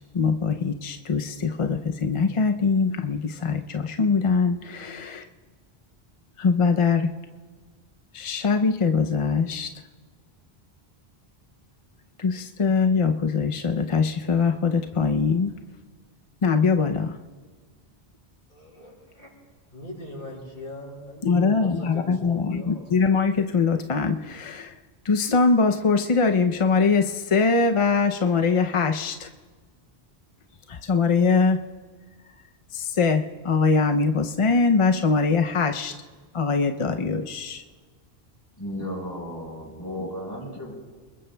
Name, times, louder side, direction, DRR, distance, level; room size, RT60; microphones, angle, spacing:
voice 1, 0.1-5.2 6.4-7.1 8.1-9.7 12.2-15.5 16.4-17.2 21.2-29.3 30.7-31.6 32.7-35.9 36.3-37.6, left 4 dB, 40° left, 0.5 m, -22 dB
voice 2, 18.5-19.3 19.7-22.8, left 1 dB, 55° left, 6.4 m, -41 dB
voice 3, 38.6-40.7, equal, 20° left, 4.6 m, -34 dB
29.5 x 21.0 x 2.2 m
omnidirectional pair, 1.0 m